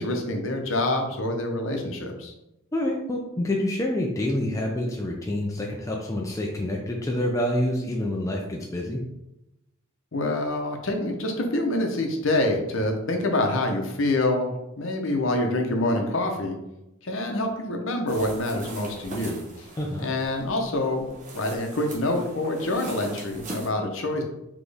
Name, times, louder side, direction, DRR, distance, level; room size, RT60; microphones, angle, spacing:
voice 1, 0.0-2.3 10.1-14.5 14.8-16.6 17.0-19.7 20.0-21.1 21.3-24.2, left 1 dB, 60° left, 3 dB, 0.7 m, -26 dB
voice 2, 2.7-9.0 19.8-20.1, left 1 dB, 15° left, -1 dB, 0.3 m, -27 dB
sound 1, 18.1-23.7, right 2 dB, 35° right, 0.8 m, -41 dB
4.2 x 2.9 x 3.3 m, 0.92 s
head